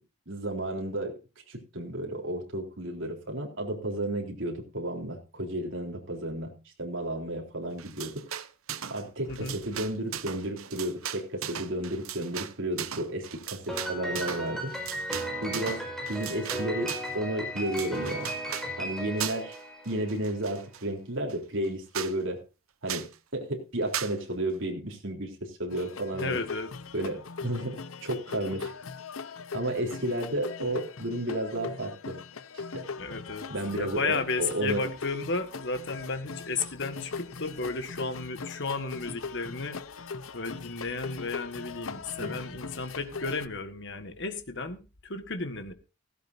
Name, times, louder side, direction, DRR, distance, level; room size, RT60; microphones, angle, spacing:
voice 1, 0.3-1.2 1.5-8.2 8.9-14.7 15.4-18.3 18.8-19.6 19.9-22.4 22.8-26.4 26.9-28.7 29.5-32.2 32.5-32.8 33.5-34.8 42.2-42.4, right 1 dB, 60° right, 3.7 m, -32 dB
sound 1, 7.8-9.0 9.3-17.2 17.6-18.7 19.2-19.6 19.9-20.8 21.3-21.4 21.6-21.7 21.9-22.2 22.9-23.1 23.9-24.2, right 10 dB, 80° right, 0.9 m, -37 dB
voice 2, 9.3-9.6 26.1-26.7 33.0-33.5 33.8-39.8 40.3-45.7, left 3 dB, 55° left, 1.8 m, -33 dB
Piano, 13.7-20.2, equal, ahead, 5.2 m, -36 dB
sound 2, 25.7-43.5, left 4 dB, 75° left, 0.8 m, -40 dB
16.5 x 15.0 x 2.7 m
head